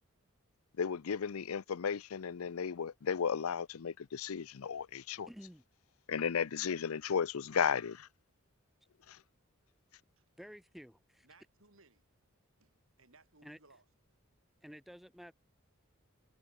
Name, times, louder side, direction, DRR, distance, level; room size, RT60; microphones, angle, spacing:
voice 1, 0.8-5.3 6.1-8.1 9.1-9.2, left 6 dB, 85° left, 0.5 m, -34 dB
voice 2, 5.3-5.6 10.4-11.3 13.4-13.6 14.6-15.3, equal, ahead, 0.8 m, -51 dB
voice 3, 11.2-13.8, right 3 dB, 70° right, 5.4 m, -65 dB
head